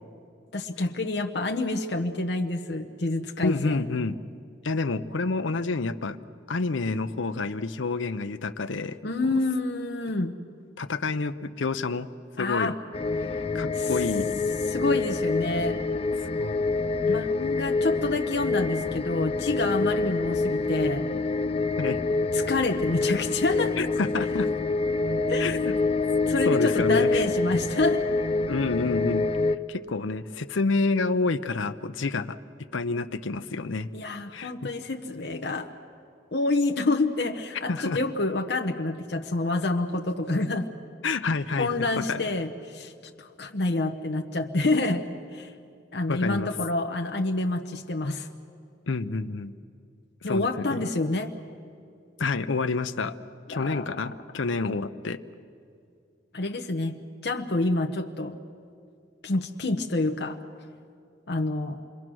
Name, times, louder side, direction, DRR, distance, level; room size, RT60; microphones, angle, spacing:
voice 1, 0.5-3.8 9.0-10.3 12.4-12.8 13.7-14.0 14.7-15.8 17.1-21.0 22.3-23.8 25.3-25.6 26.3-28.0 33.9-35.7 36.3-40.7 41.6-42.9 43.2-45.1 45.3-45.5 45.9-48.3 50.2-51.3 53.5-54.0 56.3-58.4 59.2-60.4 61.3-61.8, left 2 dB, 60° left, 2 dB, 0.9 m, -28 dB
voice 2, 3.4-4.2 4.6-6.2 6.5-9.0 10.8-12.1 12.4-12.7 13.3-14.4 16.2-16.7 17.1-17.2 21.8-22.0 23.8-24.5 25.4-25.7 26.4-27.2 28.5-29.3 29.7-32.4 32.7-33.9 34.3-34.7 37.7-38.0 41.0-42.2 46.1-46.5 48.9-49.5 50.2-50.9 52.2-53.2 53.5-55.2, left 3 dB, 85° left, 10 dB, 0.7 m, -28 dB
sound 1, 12.9-29.6, left 3 dB, 30° left, 0.4 m, -26 dB
27.5 x 21.5 x 6.2 m, 2.4 s
head